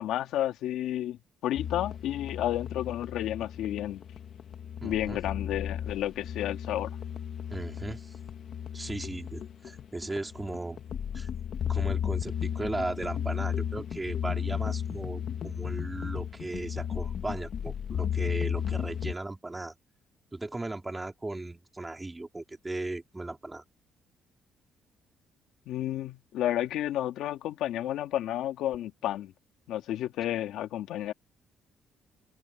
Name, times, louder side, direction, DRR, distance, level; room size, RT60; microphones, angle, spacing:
voice 1, 0.0-4.0 4.8-6.9 25.7-29.3 29.7-31.1, left 12 dB, 85° left, 2.4 m, -31 dB
sound 1, 1.6-19.1, left 9 dB, 50° left, 1.6 m, -34 dB
voice 2, 4.8-5.2 7.5-8.1 8.7-10.8 11.1-11.3 11.7-19.7 20.3-23.6, right 2 dB, 10° right, 4.7 m, -37 dB
cardioid pair, 150°, 0 cm